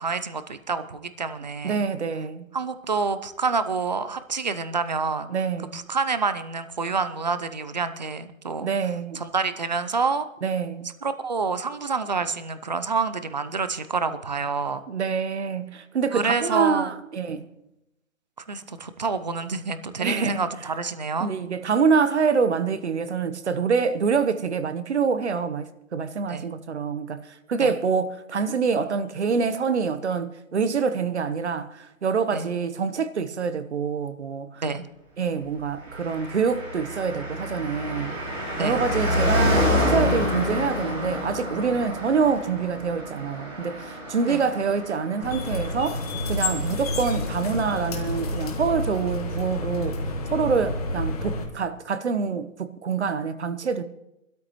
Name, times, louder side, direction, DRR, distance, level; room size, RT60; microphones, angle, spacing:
voice 1, 0.0-1.8 2.5-5.3 5.7-8.7 9.1-10.3 11.0-14.8 16.1-16.9 18.5-21.3 26.3-26.5 27.6-27.7 32.3-32.5 34.6-34.8 38.6-38.8 44.3-44.5, right 4 dB, 35° right, 0.6 m, -28 dB
voice 2, 1.6-2.5 5.3-5.8 8.6-9.2 10.4-10.9 14.9-17.5 20.0-20.4 21.2-34.6 35.2-38.2 38.6-53.8, right 5 dB, 55° right, 1.1 m, -26 dB
Car passing by, 35.8-47.7 47.9-48.0, left 1 dB, 15° right, 2.5 m, -28 dB
sound 1, 45.2-51.4, left 2 dB, 30° left, 1.5 m, -29 dB
23.5 x 13.0 x 3.1 m
hypercardioid pair, 165°, 40 cm